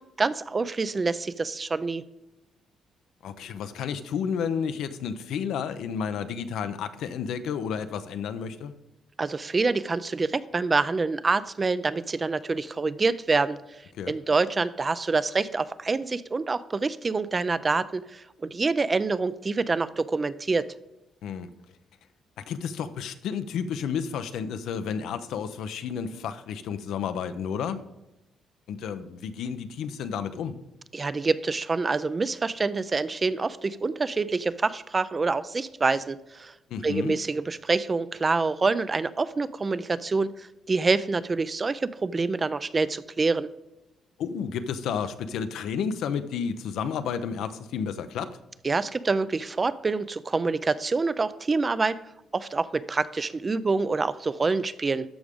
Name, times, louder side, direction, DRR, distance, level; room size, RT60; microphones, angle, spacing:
voice 1, 0.2-2.0 9.2-13.6 14.1-18.2 18.5-20.7 30.9-36.5 36.8-40.3 40.7-43.5 48.6-52.0 52.3-55.0, right 3 dB, 30° right, 15 dB, 0.4 m, -26 dB
voice 2, 3.2-8.7 13.9-14.1 21.2-21.5 22.4-27.8 28.7-30.6 36.7-37.2 44.2-48.4, left 7 dB, 80° left, 10 dB, 0.6 m, -31 dB
13.0 x 4.9 x 3.6 m, 0.92 s
cardioid pair, 90°, 0 cm